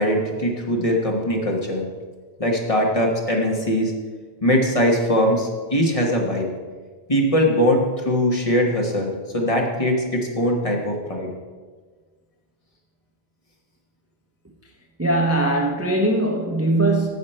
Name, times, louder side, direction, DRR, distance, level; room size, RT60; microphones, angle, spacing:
voice 1, 0.0-1.8 2.4-3.9 4.4-6.5 7.1-11.3, equal, 35° left, 0 dB, 1.3 m, -21 dB
voice 2, 15.0-17.1, right 1 dB, 15° right, 1 dB, 0.7 m, -20 dB
9.6 x 7.1 x 4.3 m, 1.5 s
omnidirectional pair, 1.1 m